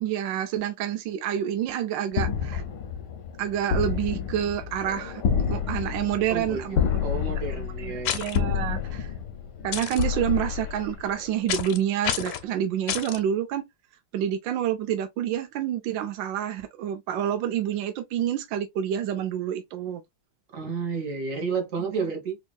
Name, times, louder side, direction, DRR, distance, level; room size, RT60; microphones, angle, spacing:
voice 1, 0.0-2.6 3.4-5.2 5.5-6.8 7.3-9.1 9.6-13.6 14.1-20.0 21.8-21.9, right 10 dB, 70° right, 1.2 m, -28 dB
sound 1, 2.1-11.4, left 7 dB, 65° left, 1.2 m, -29 dB
voice 2, 6.3-6.7 7.0-8.2 20.5-22.4, right 5 dB, 45° right, 1.4 m, -31 dB
sound 2, 8.0-8.4 9.7-10.0 11.5-11.8 12.0-12.4 12.9-13.2, left 10 dB, 85° left, 1.6 m, -29 dB
4.4 x 2.8 x 2.3 m
omnidirectional pair, 2.4 m